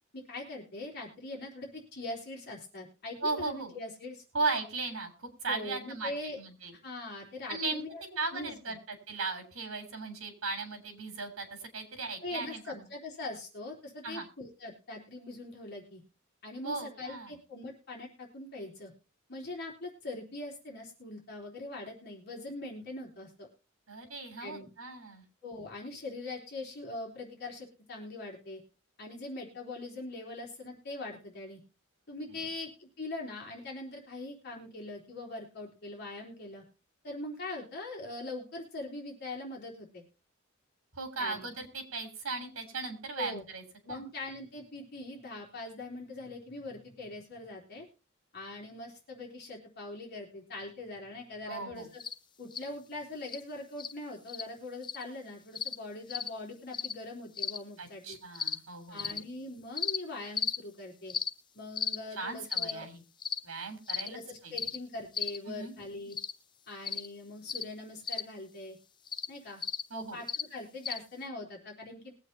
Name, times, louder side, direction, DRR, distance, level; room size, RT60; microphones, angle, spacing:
voice 1, 0.1-4.2 5.5-6.4 6.7-8.0 8.3-8.7 12.2-16.0 16.4-18.9 19.3-23.5 24.4-24.7 25.4-28.6 29.0-31.6 32.1-36.6 37.0-40.0 41.2-41.5 43.1-43.4 43.9-47.9 48.3-52.0 52.4-58.2 58.9-61.1 61.5-62.8 64.0-66.2 66.7-68.8 69.3-69.6 69.9-72.1, left 2 dB, 50° left, -2 dB, 3.7 m, -42 dB
voice 2, 3.2-3.7 4.3-6.7 7.5-7.8 8.2-12.8 14.0-14.3 16.6-17.4 23.9-25.2 32.3-32.5 40.9-44.0 51.4-51.9 57.8-59.2 62.1-63.0 63.4-64.5 65.5-65.7 69.9-70.2, right 3 dB, 75° right, 6 dB, 3.4 m, -37 dB
sound 1, 52.0-52.1 52.5-52.6 53.3-53.4 53.8-53.9 54.3-54.4 54.8-55.0 55.5-55.8 56.1-56.3 56.7-56.9 57.4-57.6 58.3-58.6 59.0-59.2 59.8-60.0 60.4-60.6 61.1-61.3 61.8-62.0 62.5-62.7 63.2-63.4 63.9-64.1 64.6-64.8 65.1-65.4 66.1-66.3 66.8-67.1 67.5-67.6 68.0-68.2 69.1-69.3 69.6-69.8 70.3-70.4 70.8-71.0, left 6 dB, 20° left, 0.5 m, -34 dB
21.5 x 8.1 x 2.7 m, 0.34 s
head